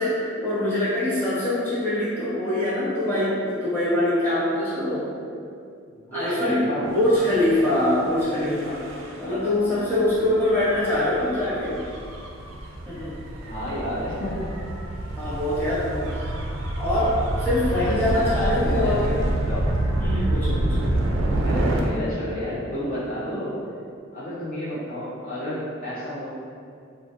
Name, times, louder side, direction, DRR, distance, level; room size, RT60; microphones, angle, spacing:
voice 1, 0.0-5.1 6.1-6.6 6.9-11.8 12.8-13.1 15.2-16.4 16.8-19.1 20.0-20.7, left 1 dB, 10° left, -11 dB, 0.8 m, -24 dB
voice 2, 5.9-7.0 13.4-14.5 17.9-18.2 18.5-19.7 21.4-23.6 24.1-26.3, equal, 45° left, -10 dB, 0.5 m, -31 dB
Gull seagull / Waves surf / Siren, 7.1-21.8, right 1 dB, 85° right, 0.3 m, -28 dB
2.2 x 2.2 x 2.7 m, 2.3 s
head